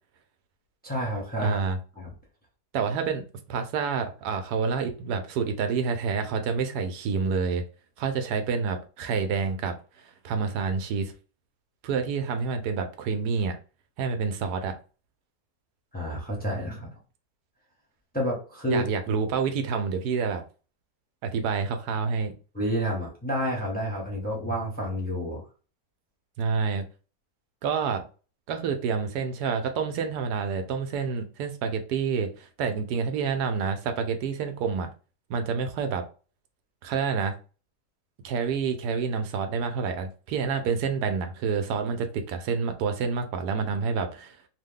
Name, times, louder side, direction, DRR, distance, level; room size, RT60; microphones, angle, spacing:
voice 1, 0.8-1.6 2.0-2.1 15.9-16.9 18.1-18.9 22.5-25.4, equal, 5° left, -3 dB, 0.8 m, -29 dB
voice 2, 1.4-1.8 2.7-3.2 3.5-7.6 8.0-11.1 11.8-13.6 14.0-14.8 18.7-20.4 21.2-22.3 26.4-26.9 27.6-28.0 28.5-34.9 35.3-36.0 36.8-37.3 38.2-44.4, right 5 dB, 85° right, 7 dB, 1.2 m, -28 dB
3.0 x 2.1 x 3.6 m, 0.35 s
omnidirectional pair, 1.7 m